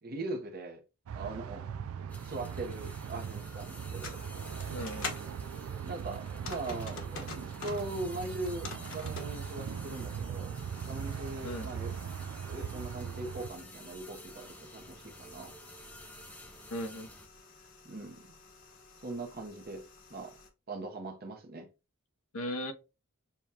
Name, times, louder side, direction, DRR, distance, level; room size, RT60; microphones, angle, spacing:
voice 1, 0.0-0.8 1.1-1.7 2.2-4.2 5.8-10.5 10.9-11.9 12.5-15.5 17.8-18.3 19.0-19.8 20.1-20.4 20.7-21.7, right 2 dB, 45° right, 0.9 m, -40 dB
sound 1, 1.1-13.5, right 7 dB, 65° right, 0.3 m, -40 dB
sound 2, 2.1-17.3, left 1 dB, 5° left, 0.6 m, -51 dB
sound 3, 3.8-5.3 6.3-7.9 8.3-9.3 10.6-20.5, left 4 dB, 60° left, 1.2 m, -48 dB
voice 2, 4.7-5.1 11.4-11.7 16.7-17.1 22.3-22.7, equal, 75° left, 0.8 m, -37 dB
6.9 x 2.3 x 2.8 m
head